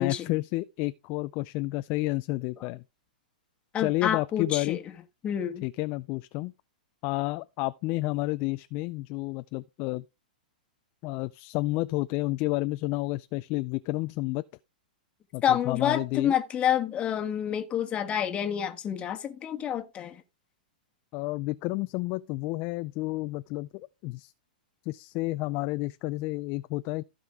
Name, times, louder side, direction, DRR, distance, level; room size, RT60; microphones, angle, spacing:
voice 1, 0.0-2.8 3.8-4.8 5.6-6.5 7.0-10.0 11.0-14.4 15.3-16.3 21.1-24.3 24.9-27.0, left 20 dB, 40° left, 0.4 m, -30 dB
voice 2, 3.7-4.8 5.2-5.6 15.4-20.2, left 9 dB, 25° left, 1.4 m, -28 dB
15.5 x 5.1 x 3.6 m
hypercardioid pair, 130°, 5 cm